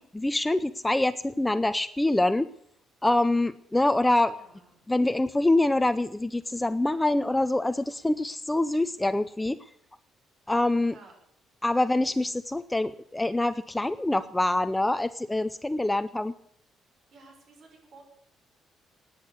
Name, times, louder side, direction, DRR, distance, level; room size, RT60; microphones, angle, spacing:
voice 1, 0.0-2.5 3.0-4.3 4.9-9.6 10.5-10.9 11.6-16.3, left 2 dB, 10° left, 13 dB, 0.6 m, -25 dB
voice 2, 4.3-4.9 10.8-11.1 17.1-18.0, right 3 dB, 50° right, 3 dB, 6.2 m, -53 dB
17.5 x 9.8 x 8.2 m, 0.68 s
cardioid pair, 130°, 0 cm